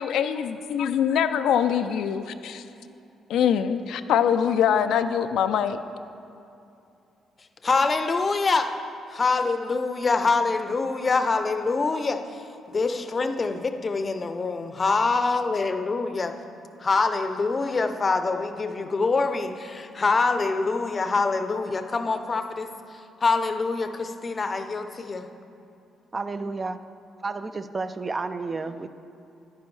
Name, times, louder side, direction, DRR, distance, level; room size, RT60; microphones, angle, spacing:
voice 1, 0.0-2.6 3.3-5.8, left 8 dB, 80° left, 9 dB, 0.3 m, -23 dB
voice 2, 7.6-8.7 9.1-16.3 16.8-22.7 23.2-25.3, left 4 dB, 35° left, 8 dB, 0.6 m, -25 dB
voice 3, 26.1-26.8 27.2-28.9, right 3 dB, 30° right, 11 dB, 0.4 m, -31 dB
10.5 x 9.5 x 3.2 m, 2.7 s
cardioid pair, 90°, 0 cm